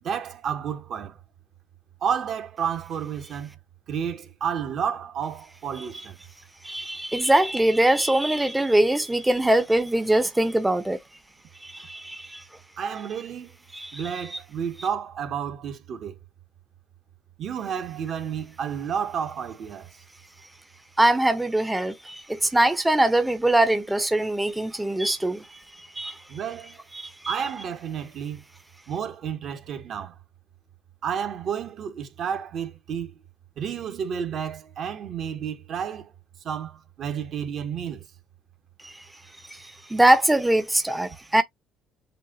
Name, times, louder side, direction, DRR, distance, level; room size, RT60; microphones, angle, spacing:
voice 1, 0.0-1.2 2.0-3.6 3.9-6.2 12.8-13.6 13.9-16.2 17.4-19.9 26.3-26.8 27.3-28.4 28.9-30.2 31.0-33.1 33.6-36.1 36.4-38.0, right 7 dB, 55° right, 1.3 m, -31 dB
voice 2, 6.6-11.0 11.6-12.4 13.7-14.0 14.3-14.4 21.0-26.2 26.9-27.3 38.8-39.0 39.5-41.4, right 1 dB, 10° right, 0.8 m, -22 dB
7.7 x 2.7 x 2.6 m
hypercardioid pair, 55°, 0 cm